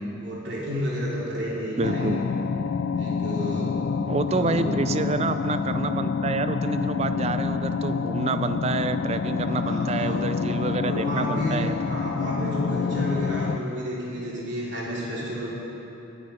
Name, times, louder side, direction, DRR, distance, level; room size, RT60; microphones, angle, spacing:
voice 1, 0.2-2.2 2.9-3.7 4.2-4.8 9.5-10.2 10.8-15.5, equal, 60° right, -6 dB, 3.1 m, -31 dB
sound 1, 1.8-13.6, left 5 dB, 70° left, 0.4 m, -27 dB
voice 2, 1.8-2.2 4.1-11.8, right 4 dB, 30° right, 11 dB, 0.4 m, -28 dB
19.0 x 6.4 x 5.7 m, 3.0 s
head